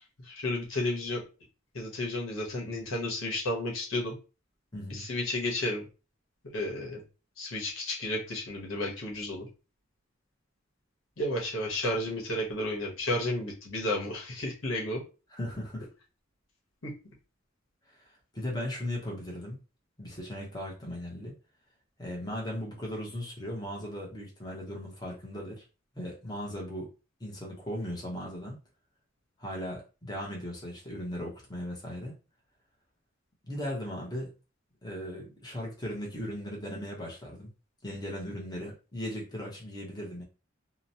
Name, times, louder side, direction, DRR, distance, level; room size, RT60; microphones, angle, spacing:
voice 1, 0.2-1.2 1.7-4.2 4.9-5.9 6.5-7.0 7.4-9.5 11.2-15.0 16.8-16.9, left 1 dB, 85° left, -2 dB, 1.0 m, -32 dB
voice 2, 4.7-5.1 15.4-15.9 17.9-18.0 18.3-19.6 20.0-21.3 22.0-25.6 25.9-26.9 27.2-28.6 29.4-32.1 33.4-34.3 34.8-37.5 37.8-40.2, equal, 20° left, -2 dB, 0.8 m, -37 dB
2.8 x 2.0 x 2.7 m, 0.32 s
head